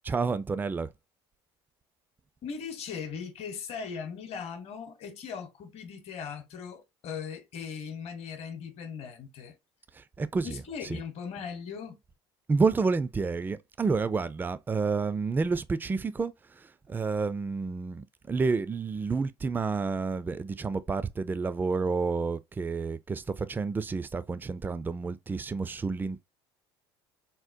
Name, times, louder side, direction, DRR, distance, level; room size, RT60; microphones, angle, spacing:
voice 1, 0.0-0.9 9.9-11.0 12.5-26.2, right 4 dB, 15° right, 0.3 m, -30 dB
voice 2, 2.4-9.5 10.4-12.0, left 6 dB, 55° left, 0.9 m, -39 dB
3.8 x 2.1 x 2.5 m
hypercardioid pair, 70°, 13 cm